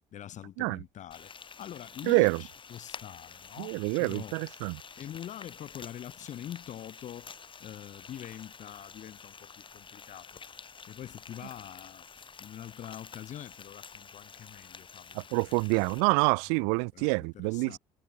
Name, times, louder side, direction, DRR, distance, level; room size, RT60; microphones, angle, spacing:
voice 1, 0.1-1.3 1.6-4.4 5.0-7.3 7.6-10.4 10.9-15.7 16.5-17.8, left 11 dB, 55° left, 2.6 m, -45 dB
Frying (food), 1.1-16.0, left 6 dB, 35° left, 4.4 m, -49 dB
voice 2, 2.1-2.4 3.6-4.8 15.3-17.8, right 40 dB or more, 85° right, 0.4 m, -26 dB
supercardioid pair, 75°, 14 cm